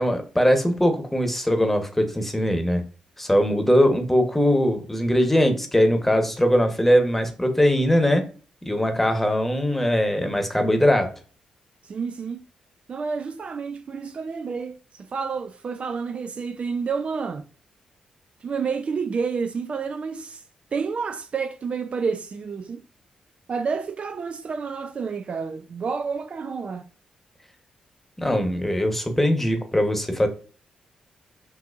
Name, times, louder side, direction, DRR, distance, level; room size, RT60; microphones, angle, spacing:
voice 1, 0.0-2.8 3.2-8.3 8.6-11.1 28.2-30.3, equal, 10° left, 1.1 m, -21 dB
voice 2, 11.9-12.4 12.9-17.4 18.4-20.4 20.7-22.8 23.5-26.8, right 5 dB, 50° right, 0.4 m, -29 dB
6.0 x 2.7 x 2.5 m
supercardioid pair, 45°, 2 cm